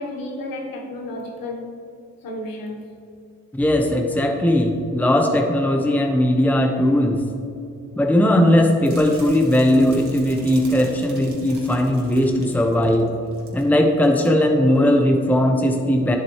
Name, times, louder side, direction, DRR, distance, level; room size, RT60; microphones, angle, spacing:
voice 1, 0.0-1.7 2.2-2.9, left 1 dB, 85° left, 1 dB, 1.3 m, -32 dB
voice 2, 3.5-7.2 8.0-13.1 13.5-16.2, left 1 dB, 5° left, 3 dB, 0.8 m, -18 dB
sound 1, 8.8-13.7 13.9-14.3 14.7-14.9, right 3 dB, 60° right, 2.1 m, -43 dB
10.5 x 7.6 x 3.2 m, 2.8 s
cardioid pair, 70°, 34 cm